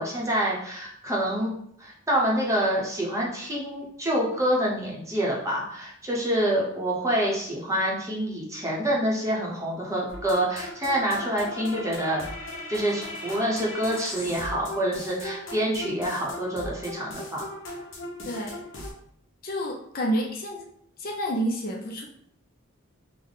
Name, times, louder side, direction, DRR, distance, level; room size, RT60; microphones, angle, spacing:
voice 1, 0.0-1.5 1.8-12.3 12.7-17.4, right 1 dB, 15° right, -4 dB, 0.8 m, -27 dB
sound 1, 10.1-18.9, left 1 dB, 65° left, 0.8 m, -38 dB
voice 2, 18.3-18.6 19.4-20.6 21.0-22.0, equal, 45° left, 1 dB, 0.5 m, -29 dB
3.4 x 2.1 x 3.8 m, 0.69 s
head